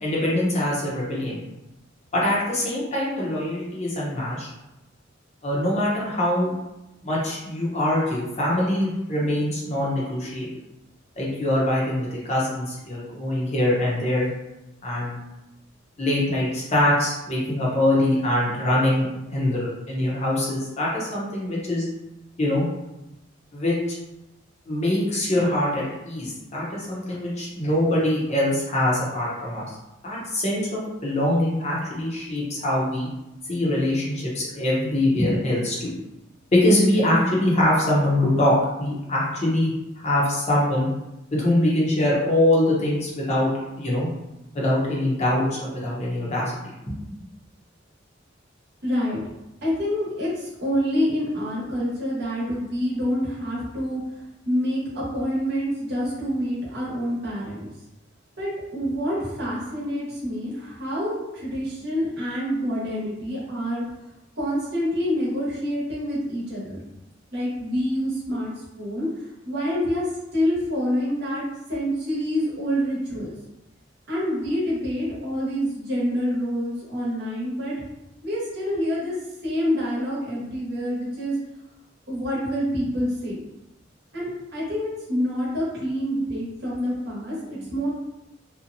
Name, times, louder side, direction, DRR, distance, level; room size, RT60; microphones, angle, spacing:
voice 1, 0.0-1.4 2.1-4.5 5.4-6.5 7.0-10.5 11.2-14.3 14.8-15.2 16.0-19.0 19.3-21.9 22.4-22.7 23.5-23.7 24.7-29.6 30.0-33.1 33.5-35.9 36.5-39.7 40.0-40.9 41.3-43.5 43.8-44.1 44.5-46.5 46.9-47.0, left 1 dB, 35° left, -5 dB, 0.7 m, -23 dB
voice 2, 48.8-49.2 49.6-54.0 54.5-57.6 58.4-63.8 64.4-66.8 67.3-68.5 68.8-69.1 69.4-70.0 70.3-71.4 71.7-73.3 74.1-77.7 78.2-79.1 79.4-81.4 82.1-83.4 84.1-87.9, equal, 60° right, -6 dB, 1.0 m, -27 dB
2.8 x 2.1 x 2.5 m, 0.96 s
head